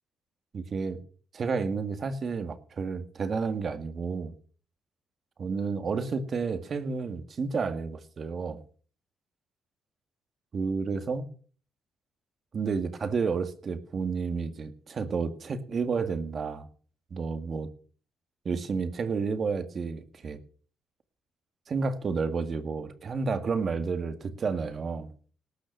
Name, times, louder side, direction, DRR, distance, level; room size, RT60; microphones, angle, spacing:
voice 1, 0.5-1.0 1.3-4.3 5.4-8.6 10.5-11.3 12.5-16.7 17.1-17.7 18.5-20.4 21.7-25.1, right 5 dB, 45° right, 10 dB, 1.9 m, -31 dB
19.0 x 6.4 x 6.4 m, 0.43 s
cardioid pair, 90°, 0 cm